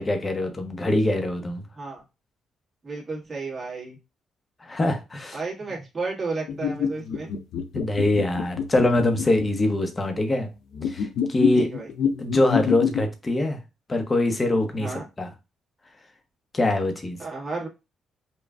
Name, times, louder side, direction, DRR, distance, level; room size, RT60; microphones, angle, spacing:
voice 1, 0.0-1.6 4.6-5.4 7.7-10.5 10.9-11.7 12.2-13.6 13.9-15.3 16.5-17.2, left 1 dB, 25° left, 0.8 m, -23 dB
voice 2, 2.8-4.0 5.3-7.3 11.5-11.9 14.8-15.0 17.2-17.7, right 3 dB, 35° right, 1.6 m, -32 dB
sound 1, 6.5-9.5 10.7-13.0, left 7 dB, 75° left, 0.4 m, -26 dB
5.2 x 2.3 x 2.4 m
cardioid pair, 90°, 0 cm